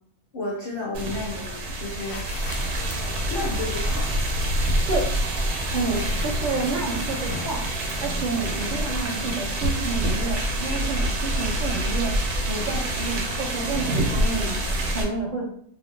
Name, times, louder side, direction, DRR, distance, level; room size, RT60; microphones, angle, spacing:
voice 1, 0.3-2.6 3.3-4.1, left 2 dB, 60° left, -4 dB, 0.6 m, -32 dB
sound 1, 0.9-15.0, right 1 dB, 90° right, 1.2 m, -26 dB
sound 2, 1.9-8.5, left 3 dB, 85° left, 1.1 m, -42 dB
voice 2, 5.7-7.6 8.0-12.2 12.5-14.6 14.9-15.5, right 3 dB, 55° right, -6 dB, 0.5 m, -29 dB
2.8 x 2.0 x 3.1 m, 0.63 s
omnidirectional pair, 1.6 m